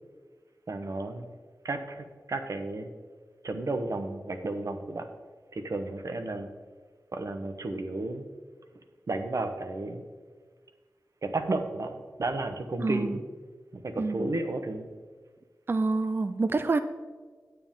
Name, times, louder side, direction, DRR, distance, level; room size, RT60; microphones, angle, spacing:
voice 1, 0.7-1.3 1.6-2.9 3.4-5.1 5.5-6.5 7.1-8.3 9.1-10.0 11.2-13.2 13.7-14.9, right 2 dB, 60° right, 7 dB, 0.9 m, -33 dB
voice 2, 12.8-13.2 14.0-14.3 15.7-16.8, right 3 dB, 35° right, 10 dB, 0.4 m, -27 dB
9.5 x 8.8 x 3.7 m, 1.5 s
wide cardioid pair, 90°, 6 cm